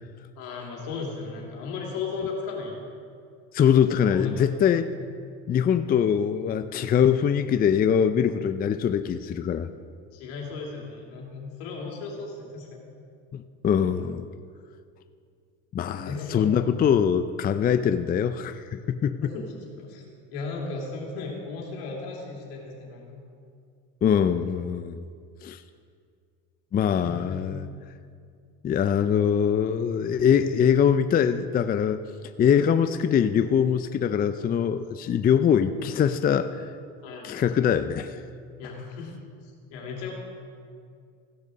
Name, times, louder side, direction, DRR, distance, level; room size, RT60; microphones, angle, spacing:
voice 1, 0.4-2.7 3.9-4.6 10.1-12.9 15.8-16.6 19.2-19.5 19.8-20.0 20.3-23.2 26.9-27.4 37.0-37.3 38.6-39.1 39.4-40.1, left 4 dB, 80° left, -2 dB, 3.0 m, -36 dB
voice 2, 3.5-4.9 5.5-9.7 13.3-14.3 15.7-19.3 24.0-25.1 25.4-25.6 26.7-27.7 28.6-32.0 32.4-36.6 37.2-38.2, left 8 dB, 30° left, 10 dB, 0.4 m, -23 dB
15.5 x 6.5 x 6.5 m, 2.3 s
supercardioid pair, 95°, 32 cm